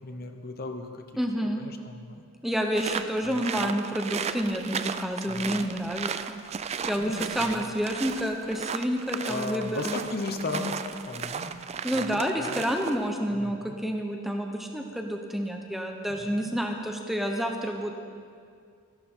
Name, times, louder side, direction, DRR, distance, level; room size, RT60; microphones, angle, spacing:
voice 1, 0.0-1.0 1.6-2.2 3.2-3.7 5.3-5.7 7.0-7.7 9.2-11.5 11.9-12.2 12.5-12.6 13.3-13.7 16.1-16.6, left 3 dB, 45° left, 6 dB, 0.8 m, -36 dB
voice 2, 1.2-1.6 2.4-6.1 6.9-10.0 11.8-17.9, equal, ahead, 2 dB, 0.7 m, -29 dB
sound 1, 2.8-13.1, right 6 dB, 30° right, 0.3 m, -35 dB
13.0 x 11.5 x 4.4 m, 2.3 s
head